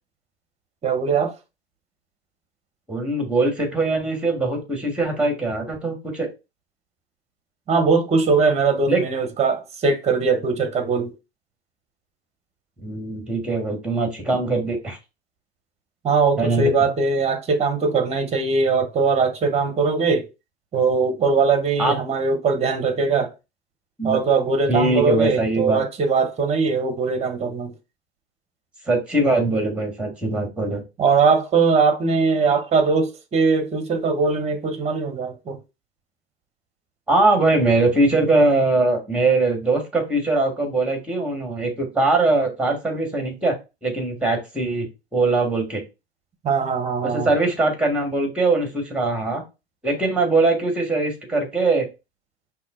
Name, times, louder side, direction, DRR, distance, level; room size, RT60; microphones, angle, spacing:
voice 1, 0.8-1.3 7.7-11.1 16.0-20.3 20.7-23.3 24.0-27.7 31.0-35.6 46.4-47.3, right 4 dB, 20° right, 0.9 m, -21 dB
voice 2, 2.9-6.3 8.9-9.0 12.8-15.0 16.4-16.7 21.8-21.9 24.0-24.2 24.7-25.8 28.9-30.8 37.1-43.5 43.8-44.9 45.1-45.8 47.0-49.4 49.8-51.9, right 2 dB, 5° right, 1.5 m, -21 dB
5.2 x 2.8 x 2.5 m
figure-of-eight pair, 95°, 33 cm